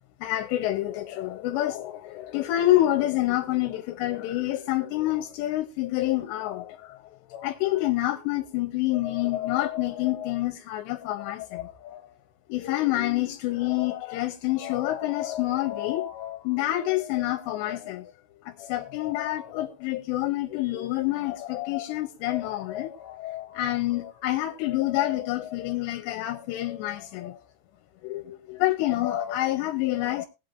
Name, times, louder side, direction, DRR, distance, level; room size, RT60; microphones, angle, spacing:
voice 1, 0.2-12.0 12.5-18.1 18.4-27.4 28.0-30.3, left 15 dB, 80° left, 3.0 m, -28 dB
20.0 x 8.2 x 2.5 m
omnidirectional pair, 5.0 m